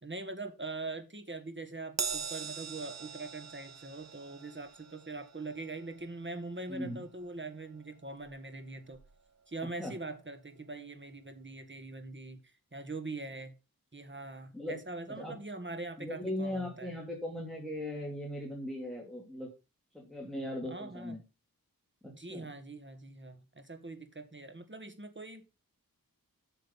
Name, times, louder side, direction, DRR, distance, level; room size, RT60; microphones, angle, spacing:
voice 1, 0.0-9.0 9.5-12.4 12.7-13.5 13.9-16.9 20.7-21.2 22.0-25.4, right 2 dB, 35° right, 1.7 m, -42 dB
Crash cymbal, 2.0-8.6 8.9-9.2 10.2-10.3, right 6 dB, 50° right, 0.7 m, -43 dB
voice 2, 6.7-7.0 9.8-9.9 14.5-14.8 15.2-15.3 16.0-19.5 19.9-21.2 22.0-22.5, left 1 dB, ahead, 2.6 m, -38 dB
8.0 x 6.7 x 5.5 m
wide cardioid pair, 70°, 35 cm